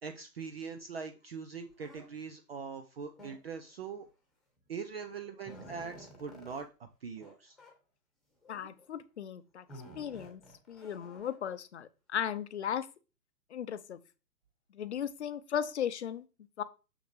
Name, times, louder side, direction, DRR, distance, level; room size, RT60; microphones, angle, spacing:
voice 1, 0.0-4.1 4.7-7.6, right 5 dB, 40° right, 7 dB, 0.6 m, -42 dB
sound 1, 1.8-2.0 3.1-3.7 4.7-4.8 5.1-6.6 7.2-7.3 7.6-7.7 8.4-8.9 9.7-11.5, equal, ahead, 1.2 m, -52 dB
voice 2, 8.5-9.6 9.9-10.4 10.7-12.9 13.5-14.0 14.7-16.2 16.6-16.7, left 9 dB, 45° left, 14 dB, 0.7 m, -36 dB
6.6 x 6.1 x 3.3 m, 0.32 s
figure-of-eight pair, 130°, 49 cm